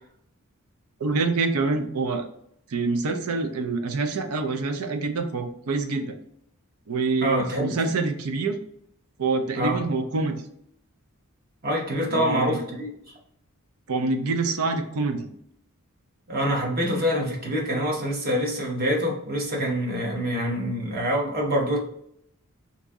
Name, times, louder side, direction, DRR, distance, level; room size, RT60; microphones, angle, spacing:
voice 1, 1.0-2.3 2.7-6.2 6.9-8.6 9.2-10.4 12.1-12.6 13.9-15.3, right 3 dB, 75° right, 6 dB, 0.5 m, -26 dB
voice 2, 7.2-7.8 9.5-9.8 11.6-12.9 16.3-21.8, equal, 40° right, -1 dB, 0.9 m, -25 dB
2.9 x 2.6 x 3.5 m, 0.71 s
head